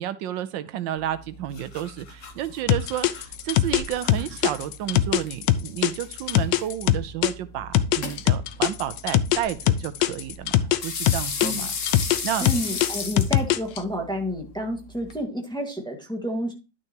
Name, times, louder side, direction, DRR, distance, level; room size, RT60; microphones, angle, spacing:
voice 1, 0.0-11.7 12.2-12.5, right 11 dB, 80° right, 12 dB, 1.4 m, -31 dB
sound 1, 1.0-15.2, left 4 dB, 45° left, 1.4 m, -37 dB
sound 2, 2.7-7.3 7.7-10.8 11.1-13.8, left 12 dB, 75° left, 1.3 m, -21 dB
voice 2, 12.4-16.5, equal, ahead, 1 dB, 1.5 m, -30 dB
11.5 x 6.3 x 2.9 m, 0.30 s
omnidirectional pair, 2.0 m